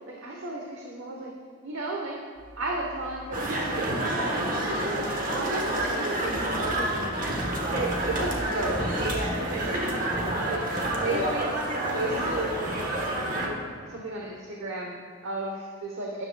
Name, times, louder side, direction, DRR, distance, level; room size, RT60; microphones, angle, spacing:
voice 1, 0.1-1.3 1.6-2.2 2.6-4.4 4.9-7.3 7.7-11.5 11.9-12.6 13.4-13.6 13.9-16.2, right 2 dB, 85° right, -1 dB, 1.0 m, -34 dB
sound 1, 2.4-4.3 4.7-10.3, equal, 5° right, 0.3 m, -39 dB
sound 2, 3.3-13.5, right 1 dB, 45° right, 1.3 m, -29 dB
12.5 x 10.5 x 2.3 m, 2.2 s
head